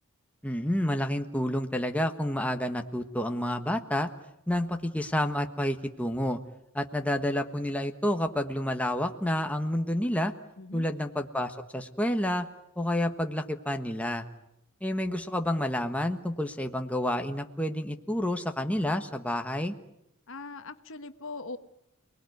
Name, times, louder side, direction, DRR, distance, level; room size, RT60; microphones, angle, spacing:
voice 1, 0.4-4.1 4.5-6.4 6.7-10.3 10.7-12.5 12.8-14.2 14.8-19.7, left 1 dB, 5° left, 5 dB, 1.4 m, -29 dB
voice 2, 10.6-10.9 20.3-21.6, left 3 dB, 65° left, 9 dB, 1.4 m, -40 dB
29.5 x 20.0 x 9.4 m, 0.84 s
head